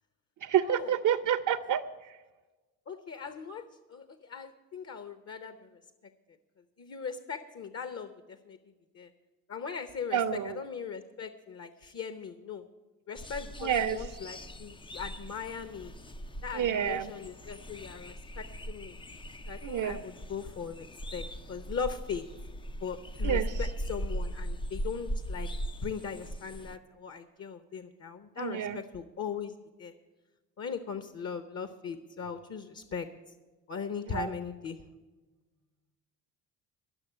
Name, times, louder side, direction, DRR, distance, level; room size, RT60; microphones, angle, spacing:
voice 1, 0.4-1.8 10.1-10.6 13.6-14.0 16.5-17.1 19.6-20.0 23.2-23.6 28.4-28.8 34.1-34.3, right 9 dB, 40° right, 11 dB, 0.7 m, -28 dB
voice 2, 2.9-5.8 6.8-8.6 8.9-9.1 9.5-12.6 13.1-15.9 16.4-19.0 19.5-20.9 21.1-22.3 22.8-25.5 25.8-29.5 29.8-29.9 30.6-33.1 33.7-34.8, left 6 dB, 30° left, 11 dB, 0.8 m, -39 dB
sound 1, 13.1-26.8, equal, 10° left, 0.4 m, -39 dB
11.5 x 6.6 x 9.6 m, 1.2 s
hypercardioid pair, 60°, 49 cm